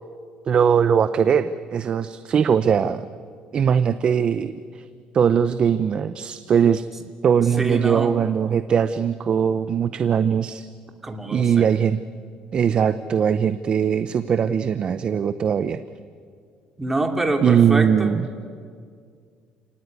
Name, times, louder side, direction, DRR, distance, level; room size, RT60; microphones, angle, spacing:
voice 1, 0.5-3.0 3.5-4.8 5.1-6.8 7.2-10.6 11.3-12.0 12.5-15.8 17.4-18.3, right 7 dB, 40° right, 12 dB, 0.7 m, -20 dB
voice 2, 7.6-8.1 11.0-11.7 16.8-18.2, right 2 dB, 10° right, 4 dB, 2.7 m, -26 dB
29.5 x 18.0 x 9.6 m, 2.1 s
cardioid pair, 130°, 3 cm